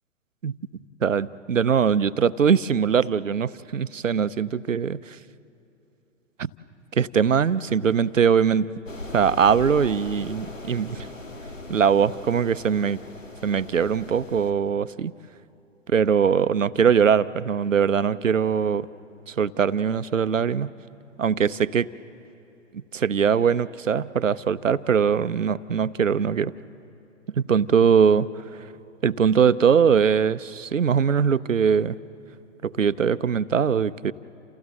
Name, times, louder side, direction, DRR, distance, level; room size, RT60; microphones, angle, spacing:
voice 1, 1.0-5.2 6.9-8.7 9.1-11.1 11.7-13.0 13.4-15.1 15.9-18.9 19.3-20.7 21.2-21.9 22.9-26.5 27.3-28.3 29.0-32.0 32.6-34.1, right 7 dB, 80° right, 15 dB, 0.7 m, -21 dB
sound 1, 8.9-14.5, left 2 dB, 80° left, 1.9 m, -39 dB
29.0 x 29.0 x 4.0 m, 2.9 s
figure-of-eight pair, 125°, 38 cm